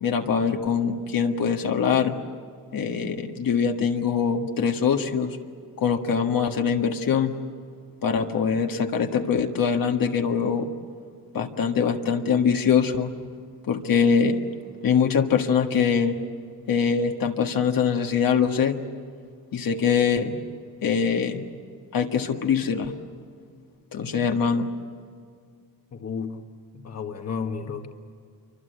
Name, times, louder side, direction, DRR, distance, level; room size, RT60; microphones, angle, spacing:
voice 1, 0.0-2.1 2.7-5.4 5.8-7.3 8.0-10.7 11.3-13.1 13.7-14.4 14.8-16.1 16.7-18.8 19.5-20.3 20.8-21.4 21.9-22.9 23.9-24.7, left 6 dB, 55° left, 3 dB, 1.7 m, -23 dB
voice 2, 25.9-26.4 26.7-27.9, left 6 dB, 40° left, 4 dB, 1.6 m, -32 dB
28.0 x 25.0 x 8.1 m, 2.1 s
cardioid pair, 150°, 40 cm